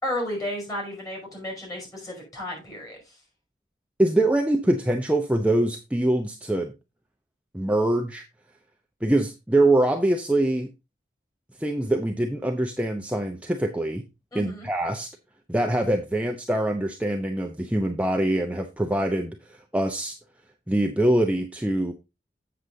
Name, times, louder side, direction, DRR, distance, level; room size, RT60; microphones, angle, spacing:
voice 1, 0.0-3.1 14.3-14.7, left 1 dB, 20° left, -1 dB, 5.4 m, -33 dB
voice 2, 4.0-6.7 7.5-8.2 9.0-10.7 11.6-14.0 14.3-15.1 15.5-19.4 19.7-20.1 20.7-21.9, right 1 dB, 10° right, 2 dB, 0.7 m, -24 dB
8.0 x 6.9 x 3.7 m, 0.25 s
head